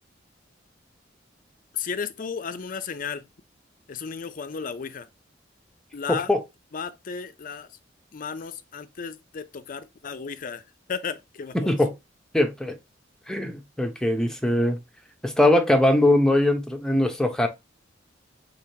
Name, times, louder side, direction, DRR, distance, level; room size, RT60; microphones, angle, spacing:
voice 1, 1.7-3.3 3.9-5.1 5.9-6.3 6.7-7.7 8.1-10.6 10.9-11.8, left 6 dB, 45° left, 0.5 m, -34 dB
voice 2, 6.1-6.4 11.5-11.9 12.3-12.8 13.3-14.8 15.2-17.5, left 1 dB, 5° left, 0.7 m, -21 dB
4.9 x 3.9 x 2.8 m
head